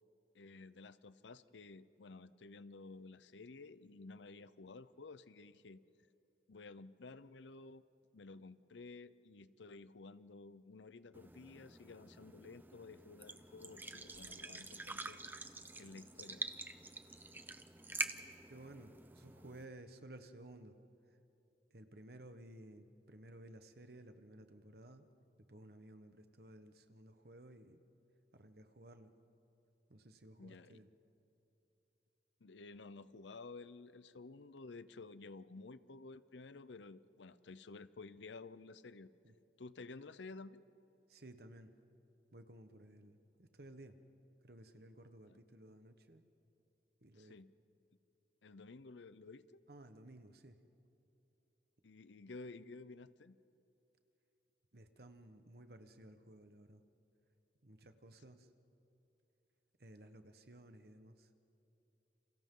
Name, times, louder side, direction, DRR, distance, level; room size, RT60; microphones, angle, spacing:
voice 1, 0.3-5.8 6.5-7.8 8.1-15.5 15.8-16.5 30.4-30.8 32.4-39.1 39.6-40.6 45.3-45.4 47.2-47.5 48.4-49.6 51.8-53.4, left 3 dB, 85° left, 15 dB, 0.7 m, -53 dB
sound 1, 11.1-19.6, right 3 dB, 10° right, 0.6 m, -47 dB
voice 2, 18.4-20.8 21.7-25.0 25.5-27.8 28.3-29.1 29.9-30.9 39.2-39.3 41.1-41.7 42.3-44.0 44.4-46.2 47.0-47.3 49.7-50.6 54.7-56.8 57.6-58.5 59.8-61.3, right 1 dB, 60° right, 8 dB, 1.2 m, -56 dB
30.0 x 27.5 x 3.9 m, 2.9 s
head